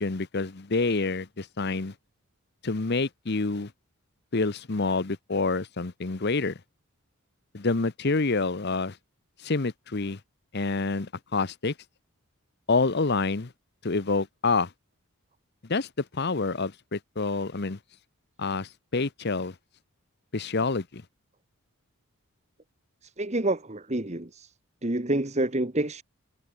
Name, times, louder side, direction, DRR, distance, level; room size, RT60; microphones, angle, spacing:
voice 1, 0.0-1.9 2.6-3.7 4.3-6.6 7.5-9.0 9.4-10.2 10.5-11.7 12.7-13.5 13.8-14.7 15.7-17.8 18.4-19.5 20.3-21.0, left 3 dB, 45° left, 0.9 m, -27 dB
voice 2, 23.0-24.5 24.8-26.0, right 1 dB, 30° right, 1.4 m, -28 dB
head